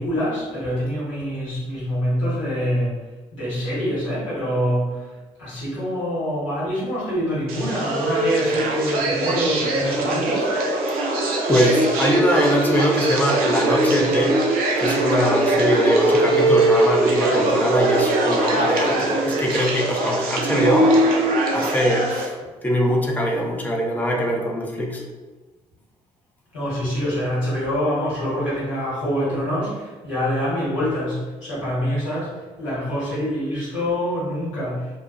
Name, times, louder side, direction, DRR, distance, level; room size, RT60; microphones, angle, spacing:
voice 1, 0.0-3.0 3.3-5.1 5.4-10.5 26.5-34.9, equal, 90° left, -10 dB, 1.2 m, -25 dB
sound 1, 7.5-22.3, right 2 dB, 65° right, 0.5 m, -21 dB
voice 2, 11.5-14.3 14.8-20.9 21.5-22.4 22.6-25.0, equal, 10° left, 0 dB, 0.5 m, -22 dB
2.6 x 2.1 x 2.4 m, 1.3 s
hypercardioid pair, 45°, 16 cm